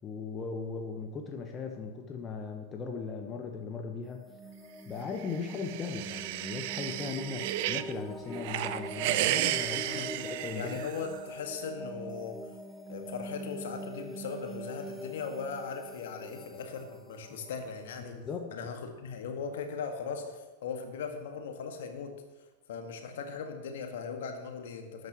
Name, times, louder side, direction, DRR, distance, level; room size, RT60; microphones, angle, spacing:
voice 1, 0.0-4.2 4.9-10.8 18.0-18.5, left 5 dB, 25° left, 4 dB, 1.1 m, -38 dB
sound 1, 4.1-18.7, right 1 dB, 5° left, 1.2 m, -43 dB
sound 2, 5.2-7.9 8.3-11.2, right 14 dB, 50° right, 0.5 m, -33 dB
voice 2, 9.9-10.2 10.5-12.4 12.9-18.2 18.5-22.1 22.7-25.1, left 5 dB, 55° left, 5 dB, 1.7 m, -39 dB
19.0 x 9.3 x 3.0 m, 1.2 s
figure-of-eight pair, 90°, 0 cm